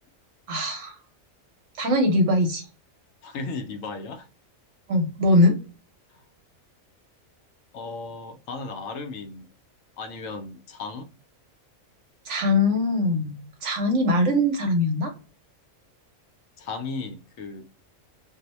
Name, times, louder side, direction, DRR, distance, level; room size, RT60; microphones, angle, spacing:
voice 1, 0.5-1.0 1.8-2.6 4.9-5.6 12.3-13.3 13.6-15.1, left 1 dB, 70° right, 0.9 m, -21 dB
voice 2, 3.2-4.3 7.7-9.5 10.0-11.1 16.6-17.7, left 3 dB, 80° left, 1.0 m, -35 dB
2.6 x 2.0 x 3.9 m
omnidirectional pair, 1.4 m